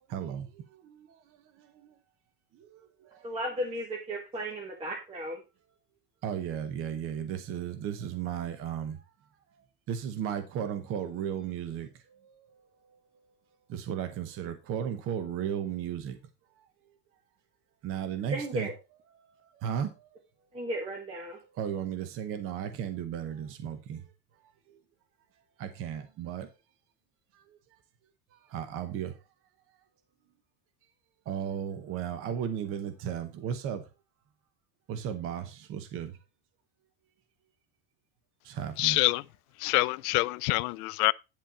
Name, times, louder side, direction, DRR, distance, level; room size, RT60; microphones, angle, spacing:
voice 1, 0.1-0.5 0.8-1.2 2.6-2.8 6.2-9.0 9.9-11.9 13.7-16.2 17.8-18.7 19.6-19.9 21.6-24.0 25.6-26.5 28.5-29.1 31.3-33.8 34.9-36.2 38.4-39.0, right 9 dB, 30° right, 0.9 m, -34 dB
voice 2, 3.2-5.4 18.3-18.8 20.5-21.4, right 1 dB, 10° right, 1.5 m, -35 dB
voice 3, 38.8-39.2 39.6-41.1, left 22 dB, 70° left, 0.6 m, -26 dB
10.5 x 4.4 x 5.5 m
cardioid pair, 175°, 46 cm